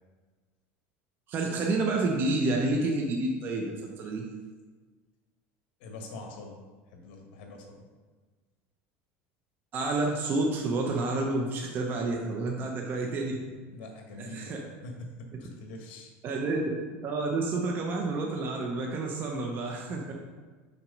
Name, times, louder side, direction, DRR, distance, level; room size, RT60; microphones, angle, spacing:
voice 1, 1.3-4.2 9.7-13.4 14.2-14.6 16.2-16.7 17.0-20.1, right 2 dB, 35° right, 0 dB, 0.8 m, -29 dB
voice 2, 5.8-6.6 6.9-7.9 13.7-16.1, left 2 dB, 75° left, 2 dB, 1.4 m, -44 dB
6.0 x 4.4 x 5.3 m, 1.4 s
supercardioid pair, 140°, 6 cm